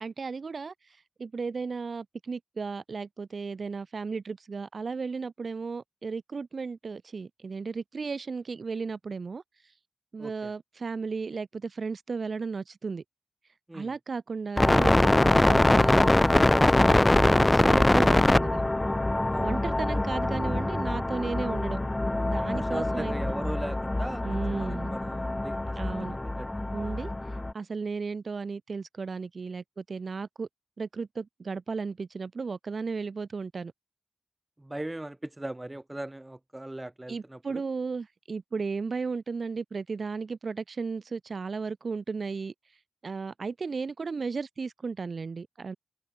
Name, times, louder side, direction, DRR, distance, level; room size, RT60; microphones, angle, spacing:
voice 1, 0.0-9.7 10.1-13.0 13.7-18.6 19.4-21.8 22.2-23.3 24.2-24.9 25.7-26.2 26.7-30.5 30.8-33.7 37.1-42.5 43.0-45.8, right 4 dB, 70° right, 0.5 m, -35 dB
voice 2, 10.2-10.5 13.7-13.9 19.3-19.6 22.5-26.5 27.2-27.4 34.6-37.6, right 1 dB, 20° right, 1.2 m, -39 dB
sound 1, 14.6-27.5, left 2 dB, 25° left, 0.3 m, -24 dB
wide cardioid pair, 65°, 0 cm